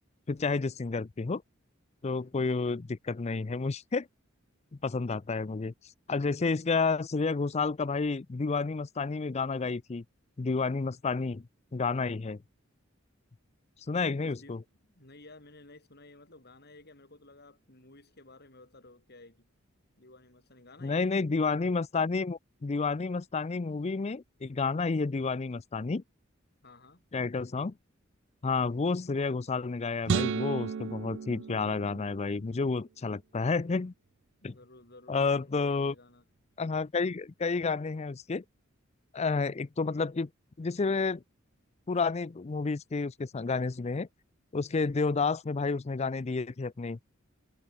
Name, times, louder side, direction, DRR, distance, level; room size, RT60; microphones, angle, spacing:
voice 1, 0.3-1.4 2.0-4.1 4.8-5.7 6.1-10.0 10.4-11.5 11.7-12.4 13.9-14.6 20.8-26.0 27.1-27.7 28.4-33.9 34.4-34.6 35.1-35.9 36.6-38.4 39.1-40.3 40.6-41.2 41.9-44.1 44.5-47.0, left 4 dB, 35° left, 0.5 m, -30 dB
voice 2, 14.2-19.5 20.0-21.2 26.6-27.0 34.4-36.2, left 2 dB, 55° left, 7.9 m, -54 dB
sound 1, 30.1-32.4, right 6 dB, 65° right, 0.4 m, -33 dB
head